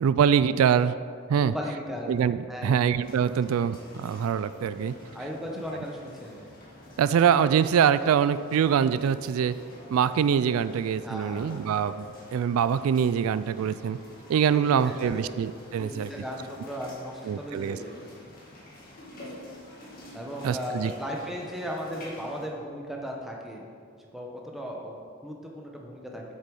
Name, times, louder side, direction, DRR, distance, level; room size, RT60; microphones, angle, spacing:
voice 1, 0.0-0.9 1.3-1.5 2.1-4.9 7.0-9.5 9.9-14.0 14.3-16.1 17.3-17.8 20.4-20.9, right 8 dB, 85° right, 15 dB, 0.3 m, -24 dB
voice 2, 1.4-2.1 2.5-2.8 3.3-3.6 5.1-6.5 11.0-11.7 14.5-15.4 15.8-17.9 20.1-23.6 24.1-26.2, equal, ahead, -1 dB, 1.1 m, -37 dB
sound 1, 3.0-22.5, left 1 dB, 40° left, 2.1 m, -47 dB
8.4 x 8.0 x 5.3 m, 2.2 s
head